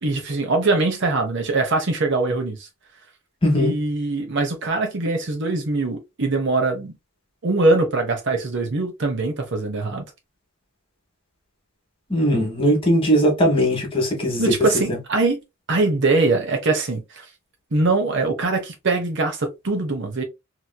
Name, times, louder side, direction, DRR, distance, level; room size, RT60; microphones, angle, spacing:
voice 1, 0.0-2.7 3.6-6.9 7.4-10.0 14.4-15.4 15.7-17.3 17.7-20.2, right 3 dB, 55° right, 0.8 m, -22 dB
voice 2, 3.4-3.7 12.1-14.4, equal, 25° left, 1.2 m, -19 dB
3.0 x 2.7 x 2.2 m
head